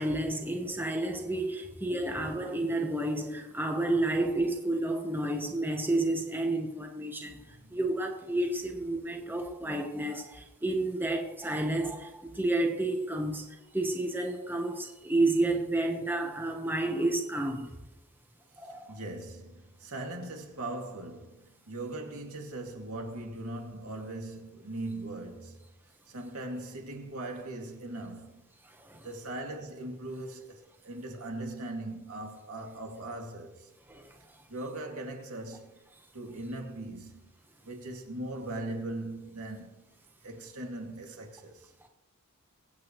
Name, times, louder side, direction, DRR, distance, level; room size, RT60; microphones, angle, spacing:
voice 1, 0.0-17.7 18.6-18.9 28.8-29.1 33.9-34.1, right 2 dB, 10° right, 1.1 m, -30 dB
voice 2, 7.3-7.8 18.6-25.7 26.1-28.4 29.0-33.7 34.2-35.8 36.1-37.3 37.6-39.8 40.2-41.7, right 2 dB, 75° right, 2.3 m, -40 dB
23.0 x 8.4 x 3.1 m
head